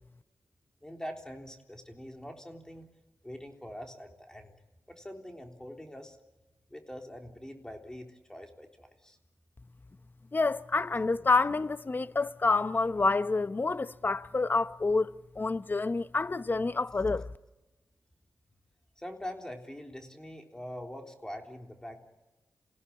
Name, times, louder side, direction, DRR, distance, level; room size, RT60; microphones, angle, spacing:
voice 1, 0.8-2.9 3.2-4.6 4.9-6.2 6.7-9.2 19.0-22.0, equal, 10° left, 3.6 m, -44 dB
voice 2, 10.3-17.3, left 3 dB, 35° left, 0.8 m, -28 dB
27.5 x 17.0 x 8.5 m
cardioid pair, 65°, 6 cm